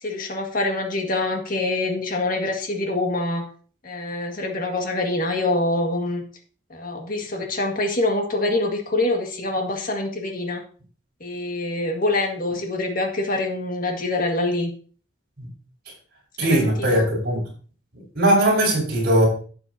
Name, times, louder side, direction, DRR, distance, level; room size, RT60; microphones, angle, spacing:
voice 1, 0.0-3.4 3.8-6.2 6.7-10.6 11.2-14.7 16.4-17.1, left 2 dB, 45° left, 1.8 m, -25 dB
voice 2, 16.4-17.4 18.1-19.3, right 1 dB, 50° right, 4.9 m, -19 dB
12.0 x 7.8 x 2.8 m
head